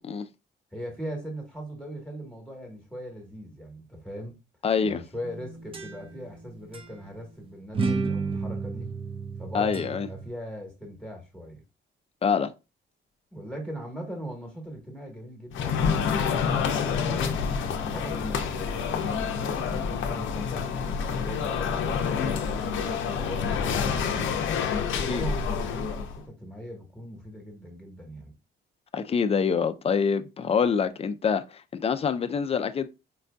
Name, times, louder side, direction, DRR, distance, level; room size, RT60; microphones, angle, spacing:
voice 1, 0.7-4.4 4.8-8.9 9.4-11.6 13.3-19.2 19.7-24.4 24.9-28.3, equal, 5° left, 1.2 m, -40 dB
voice 2, 4.6-5.0 9.5-10.1 12.2-12.5 25.0-25.2 28.9-32.9, left 6 dB, 30° left, 0.4 m, -26 dB
sound 1, 5.2-6.4 6.7-6.9 7.7-10.3, right 4 dB, 30° right, 0.6 m, -32 dB
sound 2, 15.5-26.2, left 6 dB, 75° left, 0.6 m, -28 dB
4.5 x 2.5 x 2.2 m
cardioid pair, 90°, 20 cm